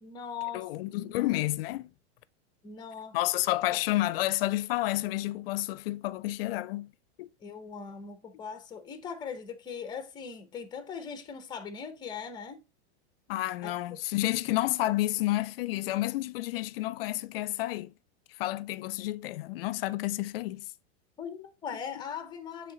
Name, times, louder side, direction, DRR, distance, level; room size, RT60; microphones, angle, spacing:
voice 1, 0.0-1.4 2.6-3.2 3.7-3.8 7.4-12.6 13.6-14.0 21.2-22.7, left 7 dB, 15° left, 0.6 m, -40 dB
voice 2, 0.5-1.9 3.1-6.9 7.2-7.3 13.3-17.9 18.4-20.7 21.7-21.8, left 17 dB, 60° left, 0.5 m, -30 dB
7.6 x 3.4 x 3.8 m
supercardioid pair, 160°, 33 cm